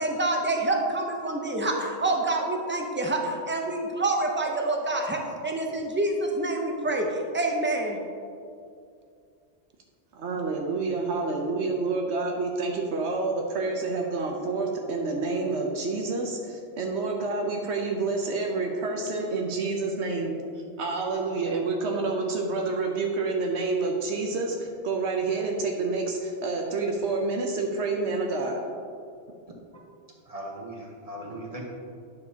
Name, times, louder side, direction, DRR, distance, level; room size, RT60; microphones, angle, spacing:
voice 1, 0.0-8.0, right 2 dB, 15° right, 1 dB, 0.6 m, -27 dB
voice 2, 10.2-20.3 20.8-28.6, right 3 dB, 85° right, 0 dB, 1.0 m, -28 dB
voice 3, 30.3-31.6, right 1 dB, 35° right, -1 dB, 1.0 m, -38 dB
9.5 x 6.5 x 2.8 m, 2.4 s
omnidirectional pair, 1.1 m